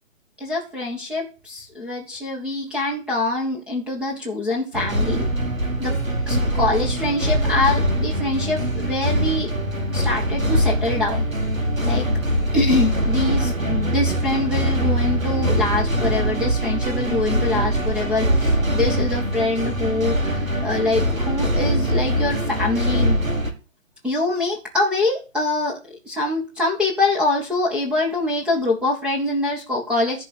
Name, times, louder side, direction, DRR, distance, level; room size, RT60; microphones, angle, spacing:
voice 1, 0.4-5.3 5.8-6.0 6.3-9.5 9.9-11.3 11.8-12.1 12.5-23.2 24.0-30.3, left 2 dB, ahead, -2 dB, 1.0 m, -24 dB
sound 1, 4.7-23.5, equal, 80° right, 2.5 m, -22 dB
11.0 x 4.2 x 7.7 m, 0.31 s
figure-of-eight pair, 135°, 39 cm